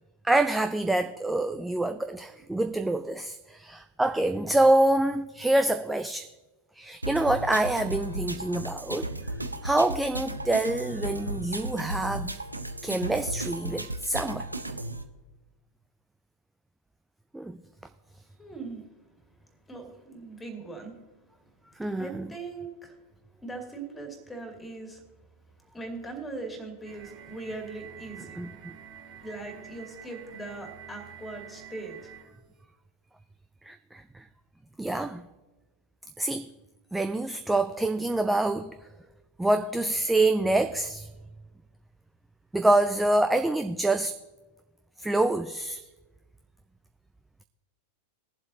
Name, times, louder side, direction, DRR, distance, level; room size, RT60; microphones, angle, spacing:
voice 1, 0.2-6.3 6.8-9.1 9.6-12.4 12.8-14.5 17.3-17.6 21.8-22.3 28.4-28.8 33.7-34.2 34.8-35.3 36.2-36.5 36.9-38.8 39.4-41.1 42.5-44.1 45.0-45.8, right 2 dB, 5° right, 0.4 m, -26 dB
sound 1, 7.0-15.0, right 1 dB, 85° right, 0.6 m, -35 dB
voice 2, 18.3-18.9 19.7-21.0 21.9-23.0 23.4-25.0 25.7-28.4 29.2-32.1, right 3 dB, 10° left, 2.5 m, -40 dB
sound 2, 26.8-32.4, right 8 dB, 45° right, 1.4 m, -47 dB
20.5 x 7.5 x 2.8 m
figure-of-eight pair, 90°, 0 cm